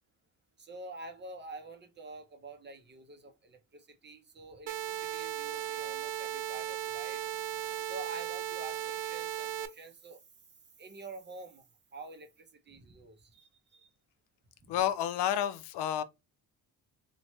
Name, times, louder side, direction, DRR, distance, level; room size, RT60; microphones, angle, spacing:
voice 1, 0.6-7.3 7.8-10.2 10.8-11.6 11.9-13.9 14.6-14.7, right 3 dB, 30° right, 0.5 m, -47 dB
sound 1, 4.7-9.7, right 12 dB, 75° right, 0.5 m, -36 dB
voice 2, 14.7-16.0, left 10 dB, 85° left, 0.5 m, -30 dB
3.0 x 2.1 x 2.9 m
cardioid pair, 160°, 40 cm